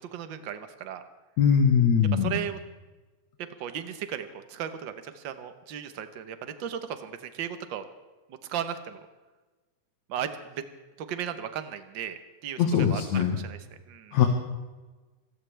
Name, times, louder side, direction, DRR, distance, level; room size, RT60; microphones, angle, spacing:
voice 1, 0.1-1.0 2.1-2.6 3.6-7.8 8.5-9.0 10.1-10.6 11.0-13.6 13.9-14.1, right 9 dB, 60° right, 9 dB, 1.2 m, -36 dB
voice 2, 1.4-2.4 12.6-13.4 14.1-14.3, left 7 dB, 70° left, 2 dB, 2.7 m, -21 dB
26.0 x 15.0 x 3.4 m, 1.2 s
omnidirectional pair, 3.5 m